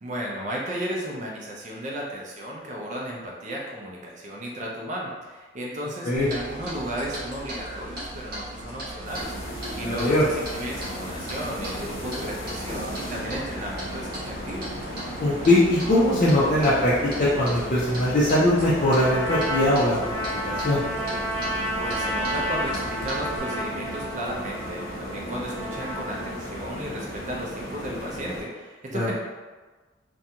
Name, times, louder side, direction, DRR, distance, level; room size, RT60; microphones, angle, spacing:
voice 1, 0.0-9.3 9.7-14.7 21.8-29.1, equal, 40° right, -2 dB, 0.5 m, -34 dB
Clock, 6.2-23.4, right 1 dB, 55° right, 0.9 m, -38 dB
sound 1, 9.0-28.4, equal, 90° left, 0.9 m, -36 dB
voice 2, 9.8-10.2 15.2-20.8 28.9-29.1, left 1 dB, 45° left, -9 dB, 0.5 m, -21 dB
Trumpet, 18.6-26.7, equal, 10° left, 0.8 m, -32 dB
2.5 x 2.2 x 2.8 m, 1.3 s
head